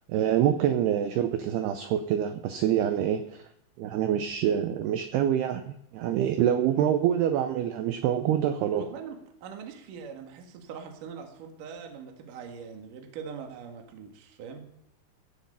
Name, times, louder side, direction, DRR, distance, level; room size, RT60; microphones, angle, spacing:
voice 1, 0.1-3.4 3.8-8.9, right 10 dB, 90° right, 8 dB, 2.2 m, -26 dB
voice 2, 8.7-14.8, right 6 dB, 55° right, 3 dB, 2.6 m, -42 dB
17.0 x 7.2 x 5.5 m, 0.78 s
omnidirectional pair, 5.6 m